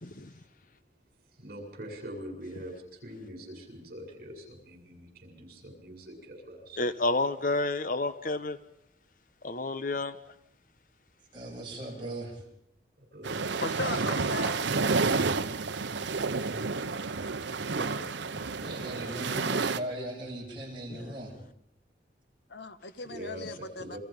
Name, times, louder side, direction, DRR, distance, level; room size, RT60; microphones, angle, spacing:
voice 1, 0.0-0.3 6.8-8.6 9.4-10.1 17.8-18.1, left 2 dB, 50° left, 12 dB, 1.0 m, -30 dB
voice 2, 1.4-6.8 13.1-13.7 23.1-24.0, right 1 dB, 55° right, 2 dB, 7.6 m, -43 dB
voice 3, 11.3-12.4 18.5-21.3, right 1 dB, 25° right, -3 dB, 7.9 m, -38 dB
sound 1, 13.2-19.8, right 4 dB, 85° right, 0.9 m, -30 dB
voice 4, 13.6-14.7 22.5-24.0, left 4 dB, 75° left, 11 dB, 1.4 m, -37 dB
29.5 x 24.5 x 5.3 m, 0.76 s
head